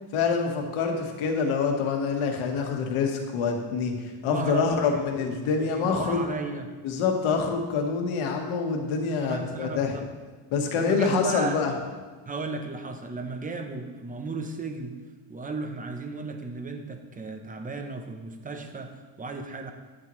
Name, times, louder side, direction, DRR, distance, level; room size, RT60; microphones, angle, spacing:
voice 1, 0.1-6.2 6.8-9.9 10.5-11.7, left 5 dB, 85° left, 3 dB, 1.5 m, -26 dB
voice 2, 4.3-6.7 9.2-10.1 10.7-11.6 12.3-15.0 15.3-19.7, right 3 dB, 15° right, 5 dB, 0.6 m, -35 dB
10.0 x 8.9 x 3.1 m, 1.4 s
cardioid pair, 160°, 48 cm